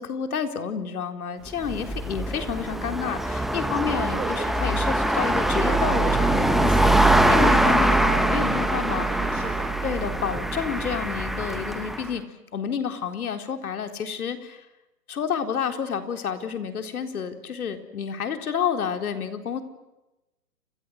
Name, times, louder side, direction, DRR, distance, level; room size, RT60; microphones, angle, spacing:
voice 1, 0.0-9.1 9.8-12.2 12.5-14.7 15.1-19.6, left 7 dB, 65° left, 7 dB, 4.2 m, -30 dB
sound 1, 1.5-12.1, right 1 dB, ahead, 1.1 m, -23 dB
voice 2, 4.1-4.7 8.8-9.8, right 5 dB, 70° right, 4 dB, 4.5 m, -36 dB
29.5 x 26.5 x 6.5 m, 0.98 s
hypercardioid pair, 140°, 46 cm